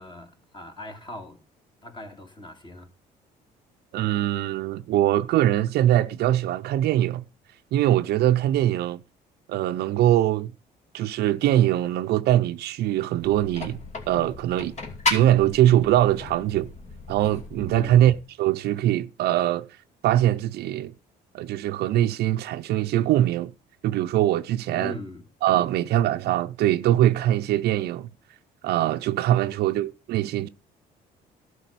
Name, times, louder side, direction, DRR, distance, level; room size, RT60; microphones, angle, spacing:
voice 1, 0.0-1.4 1.8-2.9 17.7-18.1 24.7-25.3 25.6-25.9 29.5-29.6, left 2 dB, 25° left, 2.7 m, -40 dB
voice 2, 3.9-7.2 7.7-9.0 9.5-10.5 10.9-13.8 14.1-14.7 15.1-16.7 17.1-19.7 20.0-20.9 21.3-23.5 23.8-24.9 25.4-28.1 28.6-30.5, right 13 dB, 70° right, 0.6 m, -22 dB
sound 1, 13.2-18.2, left 3 dB, 45° left, 2.4 m, -34 dB
12.0 x 4.9 x 8.2 m
cardioid pair, 110°, 17 cm